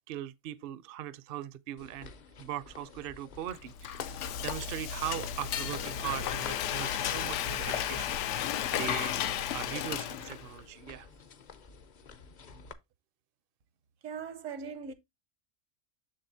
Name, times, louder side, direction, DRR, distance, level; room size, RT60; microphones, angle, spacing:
voice 1, 0.1-2.1 2.4-11.1, right 12 dB, 60° right, 0.7 m, -40 dB
sound 1, 1.8-12.7, left 6 dB, 45° left, 0.7 m, -51 dB
Frying (food), 3.5-10.6, left 9 dB, 75° left, 0.9 m, -33 dB
voice 2, 14.0-14.9, right 6 dB, 80° right, 1.2 m, -39 dB
7.6 x 6.7 x 2.7 m
omnidirectional pair, 1.3 m